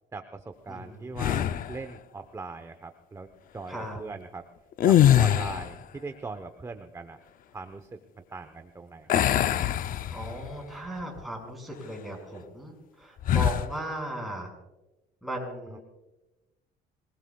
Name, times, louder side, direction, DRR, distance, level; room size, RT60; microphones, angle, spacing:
voice 1, 0.1-4.5 4.8-7.2 7.5-8.0 8.3-9.1 15.7-15.8, right 4 dB, 20° right, 8 dB, 1.0 m, -40 dB
voice 2, 0.7-1.1 3.7-4.0 10.1-14.5 15.2-15.8, right 1 dB, ahead, -1 dB, 5.8 m, -37 dB
sound 1, 1.2-1.8 4.7-5.8 9.1-10.5 11.0-11.2 13.2-13.7, left 11 dB, 55° left, 0.6 m, -23 dB
26.0 x 19.5 x 2.4 m, 1.0 s
cardioid pair, 110°, 17 cm